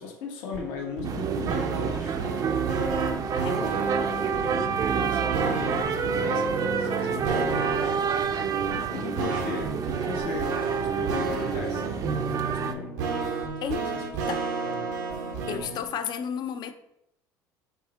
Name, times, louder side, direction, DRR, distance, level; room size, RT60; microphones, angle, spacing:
voice 1, 0.0-2.4 3.5-3.8 4.9-8.0 8.5-12.9 13.8-14.0 14.6-14.8, left 5 dB, 75° left, 0.9 m, -38 dB
sound 1, 0.5-15.8, right 4 dB, 85° right, 0.7 m, -33 dB
sound 2, 1.0-12.7, right 6 dB, 40° right, 0.4 m, -28 dB
voice 2, 3.4-3.7 13.6-13.9 14.3-14.4 15.5-16.7, left 7 dB, 50° left, 0.5 m, -32 dB
6.0 x 2.0 x 4.1 m
supercardioid pair, 85°, 9 cm